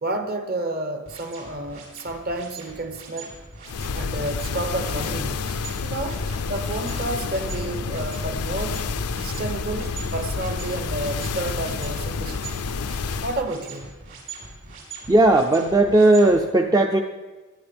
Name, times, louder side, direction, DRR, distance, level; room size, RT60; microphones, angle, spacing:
voice 1, 0.0-3.4 3.9-5.5 5.8-8.9 9.1-12.6 13.2-14.0, right 2 dB, 45° right, 1.0 m, -30 dB
sound 1, 1.1-16.4, right 4 dB, 60° right, 4.5 m, -42 dB
sound 2, 3.7-13.5, left 4 dB, 85° left, 0.6 m, -29 dB
voice 2, 15.1-17.0, right 2 dB, 15° right, 0.4 m, -16 dB
17.5 x 11.0 x 3.5 m
head